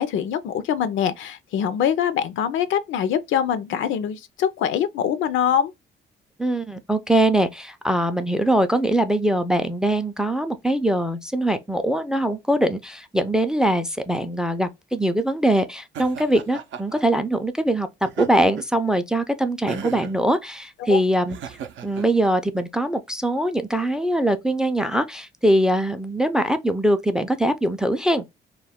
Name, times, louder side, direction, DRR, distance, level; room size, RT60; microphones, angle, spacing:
voice 1, 0.0-5.7 20.8-21.0, left 9 dB, 75° left, 0.5 m, -23 dB
voice 2, 6.4-17.9 18.2-21.6 21.8-28.2, right 1 dB, 5° right, 0.3 m, -22 dB
Laughter, 15.9-17.0 18.0-18.8 19.7-20.2 21.3-22.1, right 8 dB, 70° right, 0.5 m, -33 dB
2.3 x 2.1 x 3.4 m
cardioid pair, 90°, 20 cm